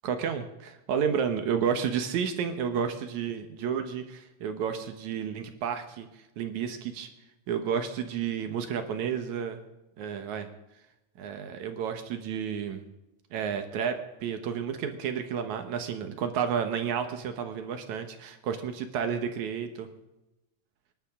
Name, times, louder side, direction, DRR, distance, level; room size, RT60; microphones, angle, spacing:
voice 1, 0.0-7.1 7.5-9.6 10.0-10.5 11.2-12.8 13.3-19.9, right 7 dB, 75° right, 7 dB, 2.5 m, -31 dB
24.0 x 12.0 x 3.7 m, 0.95 s
omnidirectional pair, 3.4 m